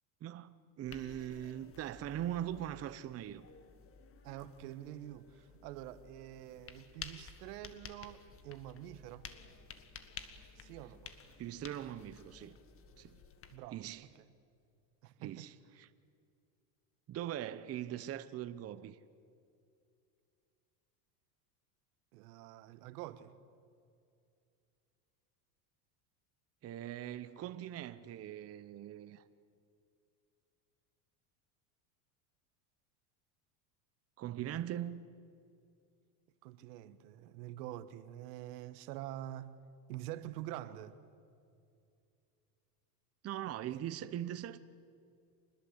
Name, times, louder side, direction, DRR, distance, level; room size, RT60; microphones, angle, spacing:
voice 1, 0.2-3.5 11.4-12.6 13.0-13.2 13.7-14.1 15.2-15.9 17.1-19.0 26.6-29.2 34.2-35.1 43.2-44.6, right 11 dB, 30° right, 0.8 m, -41 dB
sound 1, 0.8-13.6, left 6 dB, 30° left, 1.7 m, -53 dB
voice 2, 4.2-9.3 10.5-11.1 13.5-13.9 14.2-14.3 15.0-15.5 22.1-23.3 36.4-39.6 39.9-41.0 43.7-43.8, right 13 dB, 80° right, 1.5 m, -46 dB
26.0 x 20.5 x 8.1 m
supercardioid pair, 125°, 47 cm